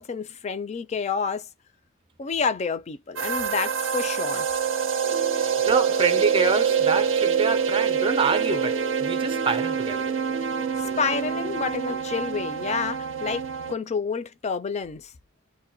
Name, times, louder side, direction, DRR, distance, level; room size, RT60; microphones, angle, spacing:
voice 1, 0.0-1.5 2.2-4.5 11.0-15.1, left 5 dB, 35° left, 0.4 m, -29 dB
sound 1, 3.2-13.7, right 7 dB, 75° right, 0.5 m, -26 dB
sound 2, 5.0-12.0, right 2 dB, 85° left, 0.7 m, -39 dB
voice 2, 5.3-10.1, right 4 dB, 25° right, 0.5 m, -26 dB
2.2 x 2.1 x 2.7 m
head